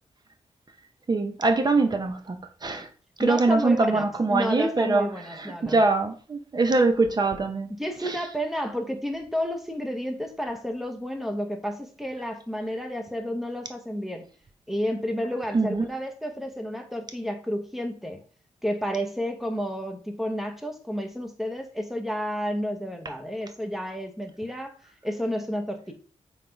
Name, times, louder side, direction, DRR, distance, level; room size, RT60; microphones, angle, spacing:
voice 1, 1.1-2.4 2.6-2.9 3.2-5.1 5.4-7.7 8.0-8.2 15.5-15.8, right 3 dB, 35° right, 0.6 m, -23 dB
voice 2, 3.2-4.0 4.3-5.8 7.8-14.2 14.7-18.2 18.6-24.7 25.0-25.9, equal, ahead, 0.8 m, -31 dB
5.8 x 3.9 x 4.5 m
wide cardioid pair, 170°, 13 cm